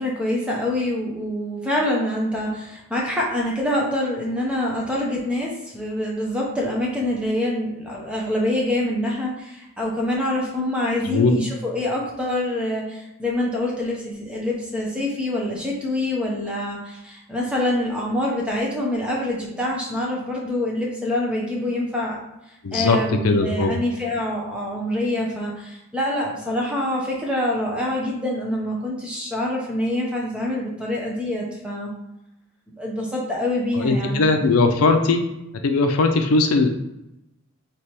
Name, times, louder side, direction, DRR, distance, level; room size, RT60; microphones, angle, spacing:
voice 1, 0.0-22.2 22.7-31.9 32.8-34.2, left 1 dB, 5° right, -3 dB, 0.8 m, -25 dB
voice 2, 22.6-23.0 23.2-23.7 33.8-35.2 35.6-36.7, left 3 dB, 80° left, 5 dB, 0.5 m, -19 dB
3.3 x 3.0 x 4.4 m, 0.90 s
head